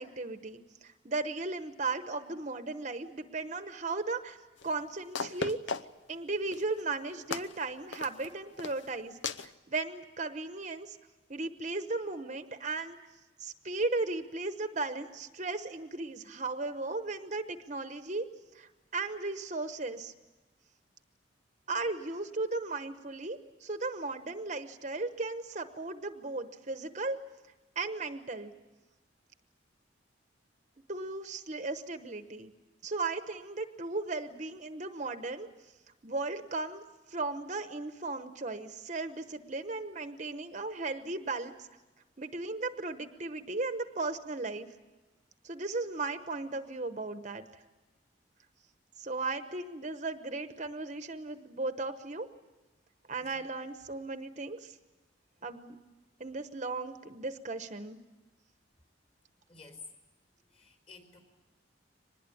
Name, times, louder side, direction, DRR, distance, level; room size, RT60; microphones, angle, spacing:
voice 1, 0.0-4.4 4.6-5.6 6.1-11.0 11.3-13.0 13.4-18.3 18.5-20.1 21.7-27.2 27.8-28.5 30.9-32.5 32.8-35.5 36.0-41.7 42.2-44.7 45.4-47.5 49.0-52.3 53.1-54.8 55.4-55.8 56.2-58.0, right 3 dB, 40° right, 9 dB, 1.0 m, -36 dB
sound 1, 4.6-4.7 5.2-6.1 6.5-6.8 7.3-7.6 7.9-8.3 8.6-8.9 9.2-9.5, left 5 dB, 80° left, 0.8 m, -36 dB
voice 2, 59.5-59.8 60.5-61.2, left 4 dB, 30° left, 4 dB, 4.4 m, -53 dB
24.5 x 20.5 x 8.6 m, 1.1 s
head